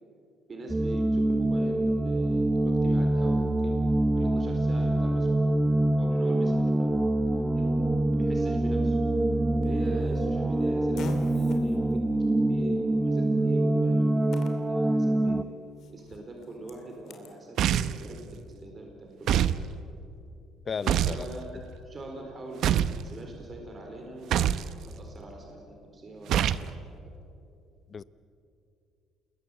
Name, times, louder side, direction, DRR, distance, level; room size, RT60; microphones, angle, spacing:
voice 1, 0.5-5.3 6.0-6.9 7.3-9.0 9.6-12.0 12.5-15.4 15.9-19.5 21.1-24.4 24.8-26.5 26.9-27.1, right 2 dB, 30° right, 1 dB, 4.2 m, -43 dB
sound 1, 0.7-15.4, right 1 dB, 10° right, 0.9 m, -25 dB
Fart, 9.6-17.4, left 5 dB, 60° left, 2.9 m, -48 dB
sound 2, 17.6-18.1 19.3-19.6 20.9-21.2 22.6-23.0 24.3-24.7 26.3-26.7, right 10 dB, 65° right, 0.8 m, -24 dB
voice 2, 20.7-21.3 27.9-28.0, left 6 dB, 35° left, 17 dB, 0.7 m, -34 dB
28.0 x 21.5 x 8.2 m, 2.6 s
cardioid pair, 115°, 0 cm